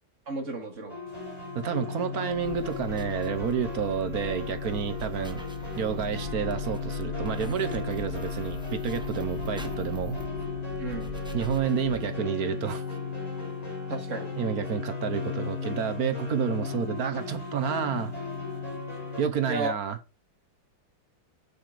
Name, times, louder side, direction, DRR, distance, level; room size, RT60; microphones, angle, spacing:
voice 1, 0.3-1.0 10.8-11.1 13.9-14.3 19.5-19.7, right 3 dB, 40° right, 2.2 m, -33 dB
sound 1, 0.9-19.2, left 2 dB, 20° left, 4.5 m, -39 dB
sound 2, 1.1-19.3, left 6 dB, 50° left, 1.4 m, -37 dB
voice 2, 1.5-5.5 5.7-10.2 11.3-12.8 14.4-18.1 19.2-20.0, right 7 dB, 55° right, 1.2 m, -30 dB
sound 3, 2.3-12.2, equal, 5° right, 0.7 m, -43 dB
7.6 x 6.7 x 4.9 m
omnidirectional pair, 2.2 m